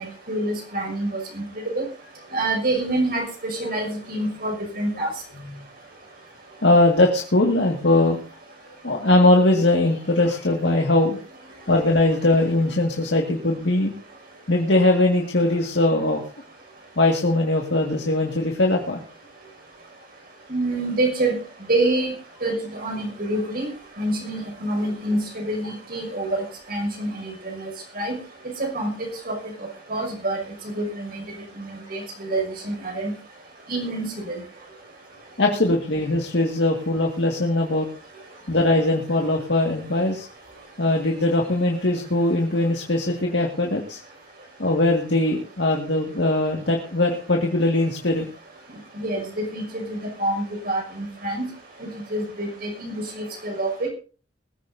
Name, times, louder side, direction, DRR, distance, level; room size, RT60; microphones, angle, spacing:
voice 1, 0.0-1.8 2.3-5.1 20.5-21.3 21.7-22.1 22.4-23.7 24.0-28.2 28.6-28.9 29.3-29.4 29.9-30.4 30.8-31.2 31.6-33.1 33.7-34.4 48.9-51.5 51.8-53.9, right 2 dB, 55° right, 2 dB, 6.0 m, -27 dB
voice 2, 6.6-8.2 8.8-11.2 11.7-13.9 14.5-16.2 17.0-19.0 35.4-37.9 38.5-40.3 40.8-44.0 44.6-48.3, left 2 dB, 70° left, 0 dB, 2.0 m, -20 dB
21.0 x 14.5 x 2.7 m, 0.38 s
head